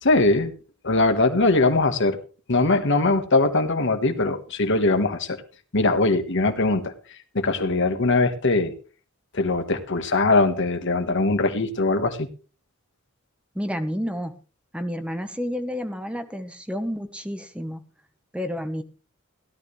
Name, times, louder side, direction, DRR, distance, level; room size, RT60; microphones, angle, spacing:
voice 1, 0.0-0.5 0.8-2.2 2.5-5.4 5.7-6.9 7.3-8.7 9.3-12.3, left 2 dB, 60° left, 7 dB, 1.6 m, -21 dB
voice 2, 13.5-14.3 14.7-17.8 18.3-18.8, equal, 5° right, 8 dB, 1.2 m, -30 dB
16.5 x 12.0 x 3.3 m, 0.36 s
head